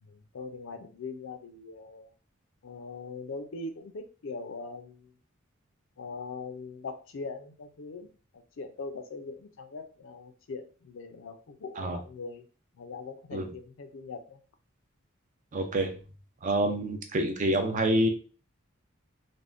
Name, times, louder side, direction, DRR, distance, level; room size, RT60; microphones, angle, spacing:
voice 1, 0.0-2.1 2.6-5.1 6.0-12.4 12.8-14.4 16.6-16.9, left 4 dB, 65° left, 7 dB, 0.4 m, -41 dB
voice 2, 15.5-15.9 16.4-18.1, right 1 dB, 40° right, 5 dB, 0.4 m, -27 dB
3.4 x 2.1 x 2.5 m, 0.37 s
head